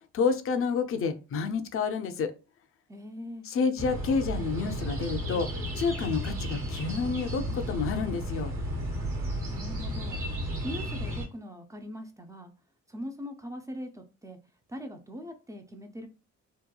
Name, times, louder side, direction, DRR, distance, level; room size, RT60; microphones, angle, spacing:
voice 1, 0.1-2.3 3.4-5.5 5.7-8.5, left 5 dB, 45° left, 8 dB, 0.5 m, -29 dB
voice 2, 2.9-3.4 9.5-10.2 10.6-12.5 12.9-14.4 14.7-16.1, equal, 10° right, 5 dB, 0.4 m, -41 dB
sound 1, 3.8-11.3, equal, 45° right, 1.1 m, -33 dB
2.9 x 2.2 x 2.2 m, 0.33 s
cardioid pair, 90°, 30 cm